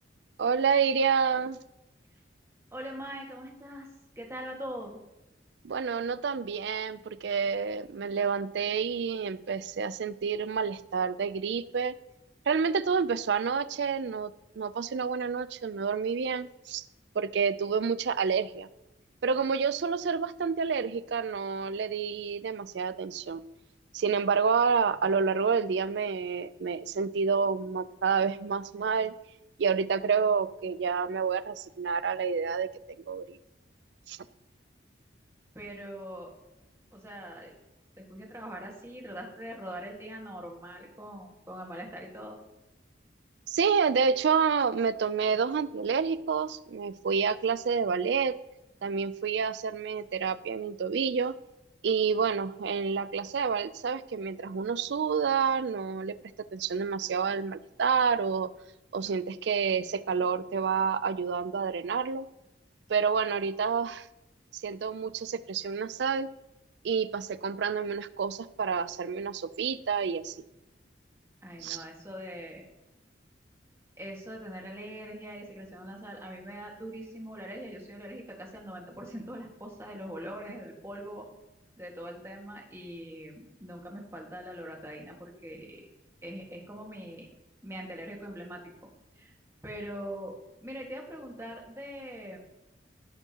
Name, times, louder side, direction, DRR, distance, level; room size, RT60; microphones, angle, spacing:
voice 1, 0.4-1.6 5.6-11.9 12.5-16.8 17.1-18.7 19.2-23.4 23.9-29.1 29.6-32.7 33.1-33.4 34.1-34.2 43.5-48.4 48.8-51.3 51.8-56.1 56.5-58.5 58.9-62.3 62.9-64.1 64.5-66.3 66.8-70.4 71.6-71.8, right 6 dB, 65° right, 15 dB, 0.4 m, -28 dB
voice 2, 2.7-3.9 4.1-5.0 35.5-36.3 36.9-37.5 38.0-42.4 71.4-72.6 74.0-81.3 81.8-85.8 86.2-87.3 87.6-88.6 89.2-89.3 89.6-92.4, equal, 15° right, 0 dB, 1.7 m, -42 dB
16.5 x 7.2 x 2.9 m, 0.95 s
head